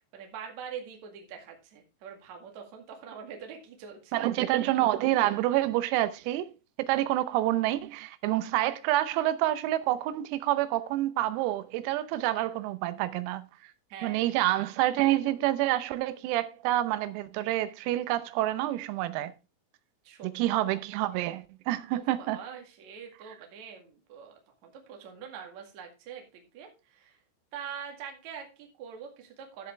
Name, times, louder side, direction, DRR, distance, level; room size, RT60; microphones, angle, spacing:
voice 1, 0.1-4.2 13.9-14.3 20.0-20.9 21.9-27.2 27.5-29.7, right 7 dB, 55° right, 2.3 m, -44 dB
voice 2, 4.1-6.5 6.8-13.5 14.0-19.3 20.2-22.4, right 15 dB, 90° right, 3.6 m, -28 dB
13.0 x 7.4 x 3.3 m
omnidirectional pair, 6.0 m